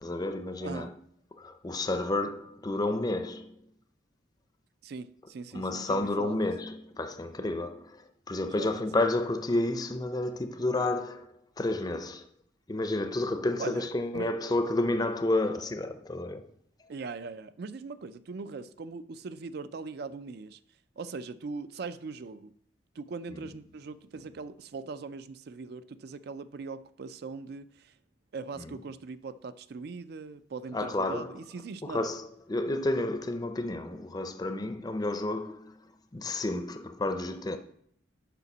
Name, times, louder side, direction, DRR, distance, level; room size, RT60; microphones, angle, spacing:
voice 1, 0.0-0.9 1.4-3.6 5.5-12.2 12.7-16.5 28.6-28.8 30.7-31.3 31.8-35.8 36.1-37.6, left 2 dB, 20° left, 0.5 m, -31 dB
voice 2, 0.6-0.9 4.8-6.5 8.5-9.1 13.6-13.9 14.1-14.3 16.9-20.6 21.0-22.6 23.0-27.9 28.3-32.1, right 4 dB, 55° right, 0.4 m, -40 dB
6.8 x 5.0 x 6.0 m
head